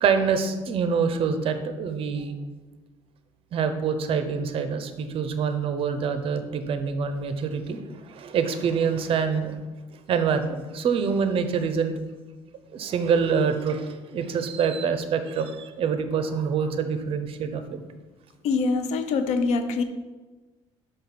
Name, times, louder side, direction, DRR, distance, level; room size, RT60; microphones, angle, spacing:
voice 1, 0.0-2.4 3.5-9.6 10.1-11.9 12.7-17.8, right 6 dB, 55° right, 9 dB, 0.8 m, -26 dB
voice 2, 18.4-19.8, left 4 dB, 80° left, 9 dB, 0.7 m, -24 dB
5.6 x 5.5 x 5.9 m, 1.2 s
cardioid pair, 115°, 11 cm